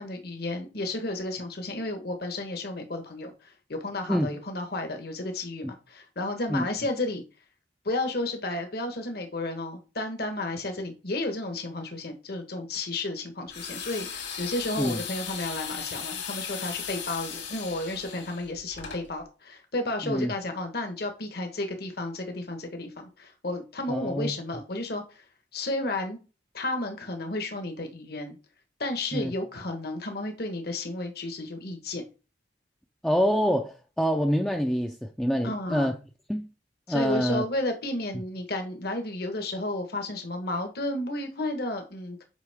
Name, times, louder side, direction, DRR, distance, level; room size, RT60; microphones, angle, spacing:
voice 1, 0.0-7.2 7.8-25.2 25.5-26.2 26.5-28.3 28.8-32.0 35.4-35.9 36.9-42.2, left 2 dB, 55° left, 1.4 m, -32 dB
sound 1, 13.5-19.0, left 7 dB, 75° left, 3.0 m, -37 dB
voice 2, 20.0-20.3 23.9-24.3 29.1-29.3 33.0-36.0 36.3-36.5 36.9-37.4, equal, 5° left, 0.5 m, -26 dB
8.1 x 5.3 x 3.6 m
head